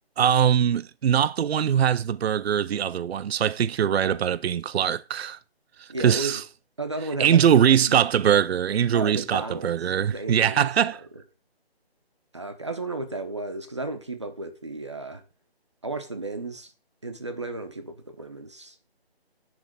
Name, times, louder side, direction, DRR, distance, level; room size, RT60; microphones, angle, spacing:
voice 1, 0.2-5.4 5.8-6.4 7.2-11.0, right 9 dB, 80° right, 0.4 m, -22 dB
voice 2, 5.9-6.4 6.8-8.0 8.9-9.7 10.1-10.7 11.1-11.2 12.3-15.2 15.8-16.7 17.0-18.8, right 2 dB, 30° right, 0.7 m, -34 dB
10.5 x 3.5 x 4.9 m
figure-of-eight pair, 175°, 31 cm